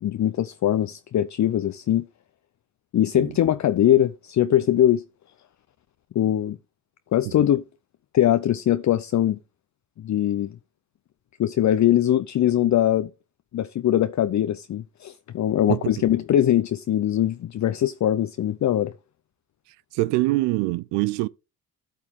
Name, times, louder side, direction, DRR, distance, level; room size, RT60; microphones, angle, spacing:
voice 1, 0.0-2.1 2.9-5.0 6.1-6.6 7.1-7.6 8.1-9.4 10.0-10.5 11.4-13.1 13.5-18.9, left 11 dB, 45° left, 0.6 m, -21 dB
voice 2, 19.9-21.3, right 20 dB, 80° right, 0.5 m, -24 dB
12.5 x 6.8 x 3.6 m
supercardioid pair, 65°, 41 cm